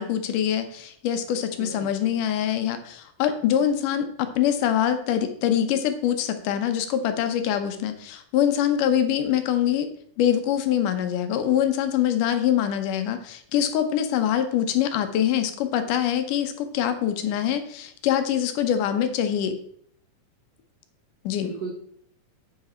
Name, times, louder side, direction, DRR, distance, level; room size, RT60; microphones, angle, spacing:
voice 1, 0.0-9.9 10.2-19.5 21.2-21.5, left 10 dB, 80° left, 8 dB, 2.4 m, -24 dB
voice 2, 1.4-2.0 21.3-21.7, right 5 dB, 90° right, 1 dB, 0.8 m, -36 dB
8.5 x 7.3 x 4.3 m, 0.63 s
omnidirectional pair, 3.7 m